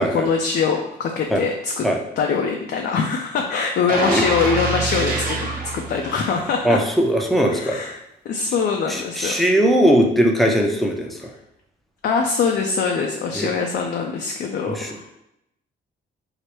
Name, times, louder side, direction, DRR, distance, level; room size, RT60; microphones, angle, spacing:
voice 1, 0.0-1.9 2.2-5.5 5.7-6.8 7.5-8.0 8.3-9.3 12.0-15.1, left 5 dB, 60° left, 2 dB, 0.4 m, -23 dB
sound 1, 3.9-6.8 7.2-7.4, right 3 dB, 45° right, 0.9 m, -26 dB
voice 2, 6.6-7.8 8.9-11.3 13.3-13.5 14.7-14.9, equal, ahead, 1 dB, 0.6 m, -19 dB
4.7 x 2.1 x 3.0 m, 0.82 s
cardioid pair, 90°, 20 cm